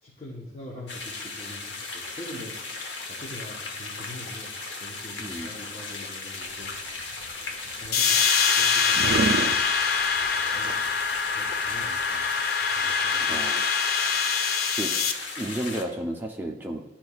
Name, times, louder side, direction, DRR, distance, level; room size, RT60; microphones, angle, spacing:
voice 1, 0.0-2.6 3.1-6.7 7.7-8.2 8.5-9.3 10.5-10.8 11.1-12.2 12.7-13.5 14.0-14.1, equal, 35° left, -4 dB, 1.0 m, -43 dB
sound 1, 0.9-15.8, left 3 dB, 75° left, 0.9 m, -37 dB
voice 2, 5.2-5.5 13.3-13.6 14.8-14.9 15.4-16.8, right 1 dB, 10° right, 1 dB, 0.6 m, -32 dB
sound 2, 6.4-12.5, right 4 dB, 55° right, 0.3 m, -33 dB
sound 3, 7.9-15.1, left 5 dB, 55° left, 0.5 m, -24 dB
11.5 x 4.3 x 2.3 m, 1.1 s
head